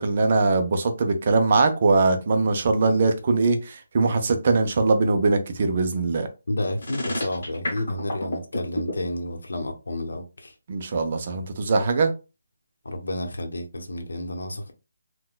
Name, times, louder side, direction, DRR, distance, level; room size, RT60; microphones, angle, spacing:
voice 1, 0.0-6.3 10.7-12.1, right 3 dB, 25° right, 0.3 m, -21 dB
voice 2, 6.5-10.2 12.8-14.7, left 1 dB, 75° left, 0.8 m, -30 dB
sound 1, 6.8-8.9, left 1 dB, 40° left, 1.2 m, -29 dB
3.8 x 2.1 x 2.3 m
hypercardioid pair, 180°, 0 cm